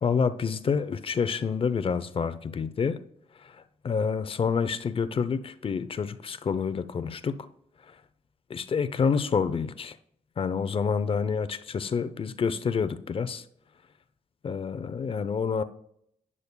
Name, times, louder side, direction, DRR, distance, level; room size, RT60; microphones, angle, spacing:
voice 1, 0.0-3.0 3.4-3.5 3.8-7.5 8.5-10.0 10.4-13.4 14.4-15.6, left 6 dB, 40° left, 0.6 m, -28 dB
12.0 x 9.7 x 2.2 m
cardioid pair, 90°, 14 cm